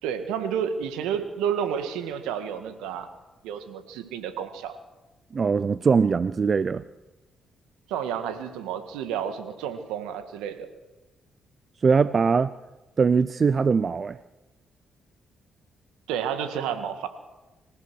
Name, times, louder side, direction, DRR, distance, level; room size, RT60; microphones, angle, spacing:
voice 1, 0.0-3.1 3.4-4.8 7.9-10.7 16.1-17.1, right 8 dB, 80° right, 9 dB, 1.9 m, -30 dB
voice 2, 5.3-6.8 11.8-12.5 13.0-14.2, right 5 dB, 45° right, 16 dB, 0.6 m, -21 dB
26.0 x 15.5 x 6.4 m, 1.1 s
hypercardioid pair, 50°, 0 cm